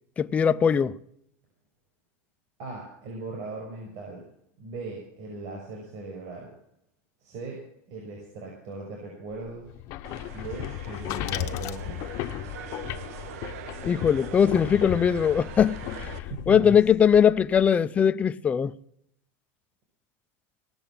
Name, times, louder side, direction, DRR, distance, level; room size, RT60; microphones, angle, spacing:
voice 1, 0.2-0.9 13.9-15.8 16.5-18.7, left 7 dB, 15° left, 0.4 m, -20 dB
voice 2, 2.6-4.2 4.6-6.5 7.2-7.6 7.9-9.7 10.3-12.3 16.3-16.8, right 3 dB, 45° right, 6.2 m, -38 dB
sound 1, 9.7-17.7, left 14 dB, 45° left, 0.8 m, -35 dB
sound 2, 10.0-16.2, right 9 dB, 70° right, 1.1 m, -43 dB
sound 3, 10.8-12.3, left 15 dB, 80° left, 1.1 m, -44 dB
18.5 x 7.0 x 8.7 m
supercardioid pair, 150°, 8 cm